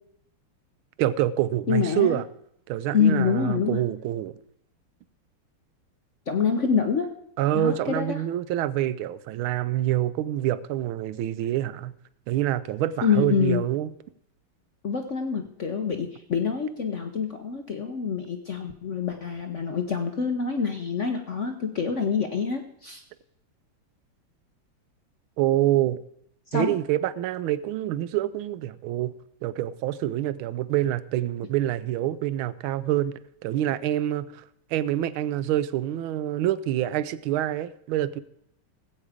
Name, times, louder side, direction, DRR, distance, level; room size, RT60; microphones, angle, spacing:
voice 1, 1.0-2.3 2.7-4.3 7.4-11.9 12.3-13.9 25.4-26.0 26.5-29.1 29.4-34.4 34.7-38.2, right 13 dB, 75° right, 16 dB, 1.4 m, -26 dB
voice 2, 1.7-2.2 2.9-3.8 6.3-7.1 7.5-8.2 13.0-13.6 14.8-23.0 26.5-26.7, left 6 dB, 60° left, 5 dB, 0.7 m, -26 dB
16.5 x 8.4 x 5.0 m, 0.73 s
omnidirectional pair, 2.4 m